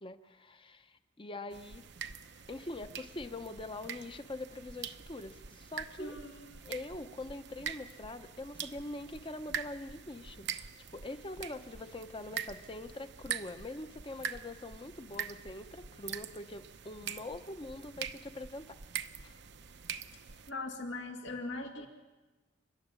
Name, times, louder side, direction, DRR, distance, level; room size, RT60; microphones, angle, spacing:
voice 1, 0.0-1.9 2.5-6.2 6.6-18.8 19.2-19.4, left 2 dB, 30° left, 9 dB, 1.0 m, -44 dB
sound 1, 1.5-20.5, right 8 dB, 65° right, 0.9 m, -44 dB
voice 2, 6.0-6.6 20.5-21.9, left 2 dB, 70° left, 3 dB, 2.3 m, -40 dB
29.0 x 12.0 x 9.0 m, 1.2 s
head